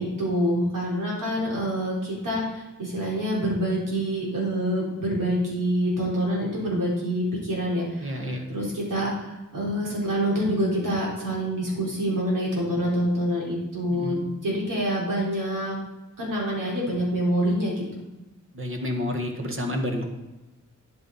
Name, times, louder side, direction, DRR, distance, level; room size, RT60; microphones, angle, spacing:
voice 1, 0.0-15.8 16.2-17.8, equal, 80° right, -4 dB, 4.1 m, -26 dB
voice 2, 8.0-8.4 13.9-14.2 18.5-20.1, left 1 dB, 40° right, 3 dB, 1.6 m, -29 dB
10.5 x 7.9 x 4.1 m, 1.0 s
wide cardioid pair, 115°, 32 cm